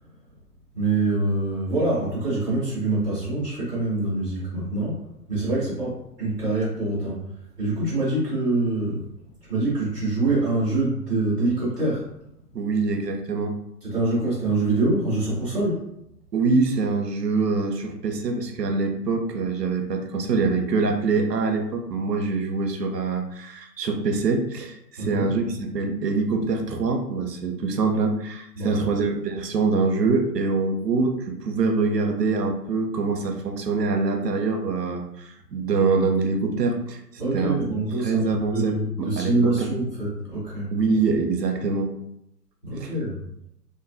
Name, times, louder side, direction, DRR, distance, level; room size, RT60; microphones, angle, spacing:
voice 1, 0.7-5.0 5.3-7.2 7.6-9.0 9.5-12.0 13.8-15.9 25.0-25.3 28.6-28.8 37.2-38.2 38.5-40.7 42.6-43.2, right 2 dB, 5° right, -13 dB, 0.5 m, -25 dB
voice 2, 12.5-13.6 16.3-37.6 38.0-39.7 40.7-41.9 42.8-42.9, right 4 dB, 85° right, 4 dB, 0.6 m, -24 dB
2.4 x 2.2 x 2.4 m, 0.78 s
figure-of-eight pair, 115°, 48 cm